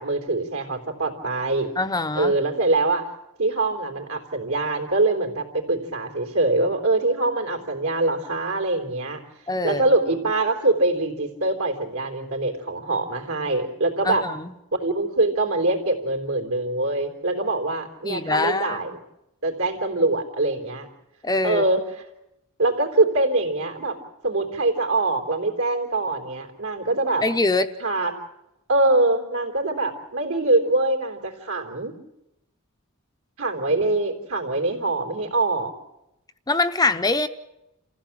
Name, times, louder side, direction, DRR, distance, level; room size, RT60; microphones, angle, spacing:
voice 1, 0.0-1.7 2.1-3.1 3.4-9.2 9.6-14.3 14.7-18.9 19.4-20.9 21.4-21.8 22.6-24.0 24.2-27.2 27.8-28.1 28.7-31.9 33.4-35.7, right 2 dB, 70° right, 3 dB, 3.7 m, -23 dB
voice 2, 1.8-2.3 9.5-9.8 14.0-14.5 18.0-18.8 21.2-21.6 27.2-27.7 36.5-37.3, left 2 dB, 15° left, 9 dB, 0.7 m, -23 dB
28.0 x 15.5 x 7.4 m, 0.90 s
head